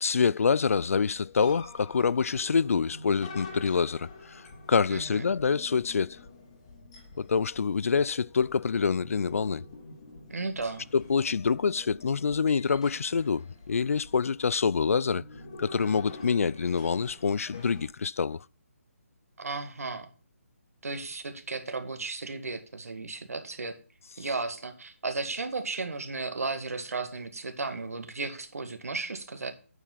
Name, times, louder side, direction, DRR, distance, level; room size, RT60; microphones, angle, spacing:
voice 1, 0.0-4.4 4.7-6.2 7.2-9.6 10.9-15.2 15.6-18.4, left 5 dB, 70° left, 0.3 m, -26 dB
sound 1, 1.1-17.9, left 3 dB, 20° left, 1.3 m, -47 dB
voice 2, 4.9-5.3 10.3-10.9 19.4-20.1 20.8-23.8 24.2-29.5, right 3 dB, 80° right, 1.9 m, -34 dB
9.0 x 4.9 x 5.7 m
hypercardioid pair, 175°, 8 cm